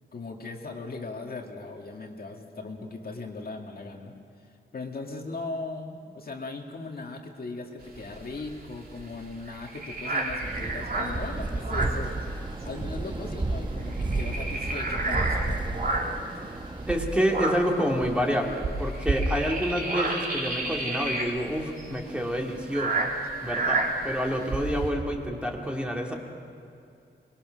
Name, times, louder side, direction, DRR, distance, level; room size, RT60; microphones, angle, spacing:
voice 1, 0.0-4.2 4.7-12.2 12.6-15.6, left 3 dB, 50° left, 1 dB, 1.9 m, -38 dB
sound 1, 7.8-12.8 13.0-13.3 13.6-16.3 16.8-24.9, right 2 dB, 50° right, 2.9 m, -30 dB
sound 2, 10.4-16.9, right 2 dB, 25° right, 0.9 m, -32 dB
voice 2, 16.9-23.1 23.4-26.1, equal, 5° right, 0 dB, 2.2 m, -28 dB
24.0 x 21.0 x 6.3 m, 2.4 s
wide cardioid pair, 145°, 20 cm